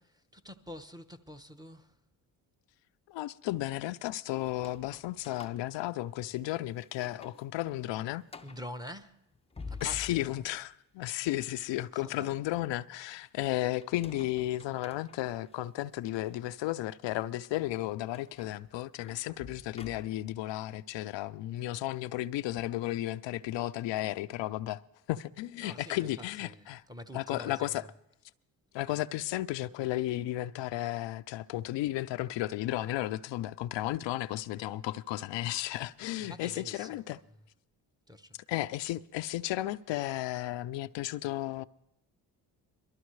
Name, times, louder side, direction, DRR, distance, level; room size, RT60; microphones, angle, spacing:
voice 1, 0.3-2.0 8.4-9.2 9.7-10.3 11.9-12.4 25.6-27.9 36.2-37.3 38.1-38.4, left 1 dB, 10° right, 0.9 m, -46 dB
voice 2, 3.1-8.2 9.8-24.8 25.1-26.8 27.1-27.8 28.7-37.2 38.5-41.6, left 15 dB, 70° left, 0.5 m, -34 dB
sound 1, 4.4-6.5 6.9-7.5 7.8-7.9 8.3-8.7 9.3-10.6 13.8-15.6 16.2-16.4 18.1-20.4, left 4 dB, 15° left, 0.5 m, -49 dB
22.0 x 13.0 x 3.2 m
supercardioid pair, 60°, 46 cm